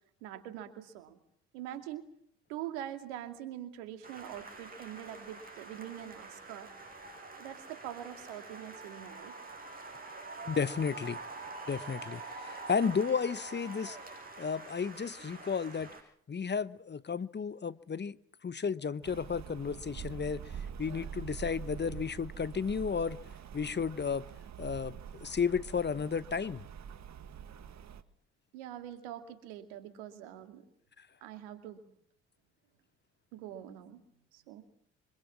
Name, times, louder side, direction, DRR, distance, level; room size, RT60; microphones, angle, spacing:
voice 1, 0.2-1.2 1.5-2.0 2.5-6.7 7.4-9.4 28.5-30.6 31.2-31.8 33.3-34.0 34.3-34.6, right 11 dB, 85° right, 2.6 m, -44 dB
sound 1, 4.0-16.0, right 3 dB, 25° right, 7.5 m, -46 dB
voice 2, 10.5-11.2 11.7-14.0 14.4-15.9 16.3-18.2 18.4-20.4 20.8-23.2 23.5-24.3 24.6-26.6, left 6 dB, 30° left, 1.1 m, -33 dB
Rain, 19.0-28.0, right 8 dB, 55° right, 1.8 m, -45 dB
25.0 x 24.0 x 7.5 m
hypercardioid pair, 50°, 33 cm